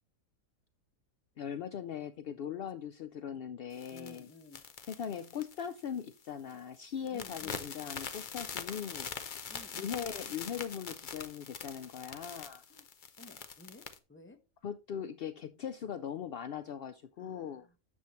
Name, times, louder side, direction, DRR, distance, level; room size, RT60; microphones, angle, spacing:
voice 1, 1.4-4.3 4.9-9.1 9.7-12.6 14.6-17.7, left 8 dB, 75° left, 0.5 m, -40 dB
sound 1, 3.7-6.2 6.5-6.8 7.1-14.0, left 6 dB, 45° left, 0.8 m, -43 dB
voice 2, 3.9-4.6 7.1-7.6 9.5-10.0 12.7-12.9 13.2-14.4 17.2-17.8, left 2 dB, 10° left, 0.8 m, -55 dB
9.8 x 7.1 x 3.0 m
omnidirectional pair, 1.6 m